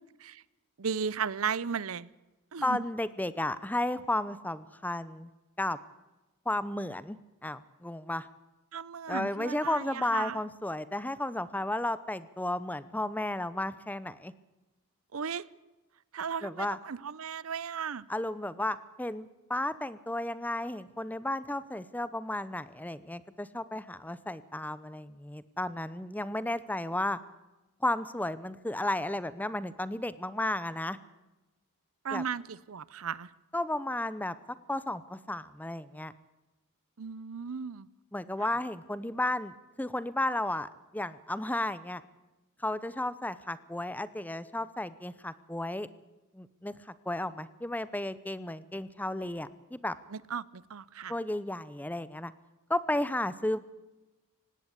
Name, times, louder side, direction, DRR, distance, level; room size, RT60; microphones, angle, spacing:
voice 1, 0.8-2.1 2.5-2.8 8.7-10.4 15.1-15.5 16.1-18.1 32.0-33.3 37.0-37.9 38.4-38.5 50.1-51.1, right 6 dB, 65° right, 21 dB, 0.6 m, -35 dB
voice 2, 2.6-5.3 5.6-5.8 6.5-8.3 9.1-14.3 16.4-16.8 18.1-27.2 27.8-31.0 32.1-32.2 33.5-34.3 34.7-36.1 38.1-42.0 42.6-45.9 46.3-46.7 47.1-50.0 51.1-52.3 52.7-53.6, left 1 dB, 5° left, 16 dB, 0.7 m, -33 dB
19.0 x 17.0 x 8.3 m, 1.1 s
head